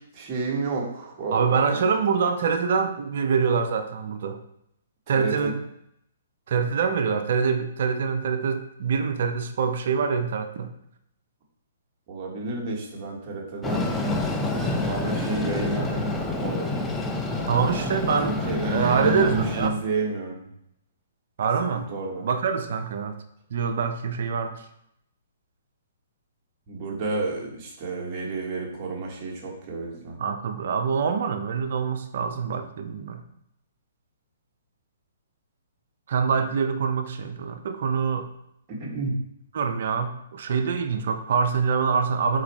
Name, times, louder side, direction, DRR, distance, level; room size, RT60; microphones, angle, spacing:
voice 1, 0.1-1.8 5.1-5.5 12.1-13.9 14.5-16.7 17.8-17.9 18.2-20.5 21.7-22.3 26.7-30.2 38.7-39.2, right 3 dB, 35° right, -2 dB, 1.0 m, -31 dB
voice 2, 1.3-4.4 5.1-5.6 6.5-10.7 17.5-19.8 21.4-21.9 22.2-23.2 23.5-24.6 30.2-33.2 36.1-38.3 39.5-42.4, right 6 dB, 60° right, 7 dB, 0.4 m, -25 dB
Train, 13.6-19.7, left 2 dB, 10° left, 0.4 m, -28 dB
4.2 x 2.4 x 3.0 m, 0.75 s
hypercardioid pair, 130°, 0 cm